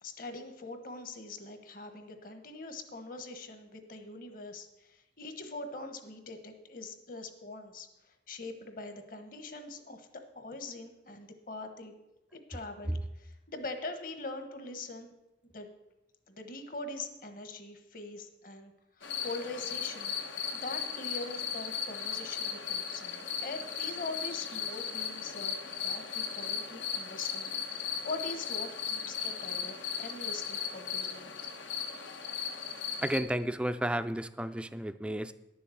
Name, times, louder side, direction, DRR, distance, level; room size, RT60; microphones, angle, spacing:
voice 1, 0.0-11.9 12.3-15.1 15.5-15.7 16.3-18.7 19.0-20.2 20.5-25.6 25.8-31.3, left 2 dB, 50° left, 7 dB, 1.2 m, -43 dB
sound 1, 19.0-33.2, left 7 dB, 90° left, 1.2 m, -37 dB
voice 2, 33.0-35.3, right 1 dB, 5° right, 12 dB, 0.3 m, -32 dB
11.0 x 7.1 x 7.7 m, 0.94 s
head